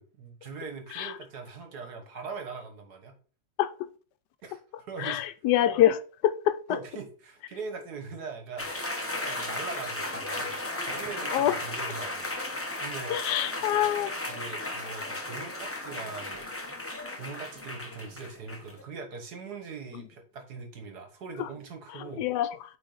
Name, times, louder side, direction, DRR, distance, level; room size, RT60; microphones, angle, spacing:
voice 1, 0.0-3.1 4.4-5.2 6.7-8.7 9.3-12.3 12.8-13.1 14.3-16.5 17.2-22.2, right 4 dB, 65° right, 1.9 m, -41 dB
voice 2, 5.0-6.8 11.3-11.6 13.1-14.2 22.0-22.6, left 12 dB, 75° left, 1.2 m, -25 dB
sound 1, 8.6-18.8, left 2 dB, 15° left, 0.4 m, -35 dB
8.9 x 3.7 x 3.9 m
omnidirectional pair, 1.9 m